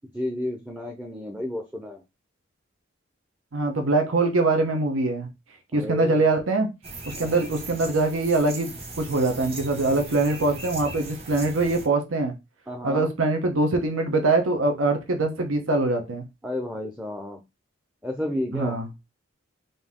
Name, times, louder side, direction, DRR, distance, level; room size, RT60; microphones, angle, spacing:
voice 1, 0.1-2.0 5.7-6.2 7.1-7.4 12.7-13.1 16.4-17.4 18.0-18.8, left 1 dB, 5° right, 2 dB, 0.5 m, -31 dB
voice 2, 3.5-5.3 5.7-6.7 7.1-12.3 12.8-16.2 18.5-18.9, right 2 dB, 85° right, 5 dB, 0.8 m, -23 dB
sound 1, 6.8-11.9, right 2 dB, 30° right, 1.1 m, -39 dB
3.9 x 2.7 x 3.5 m, 0.24 s
head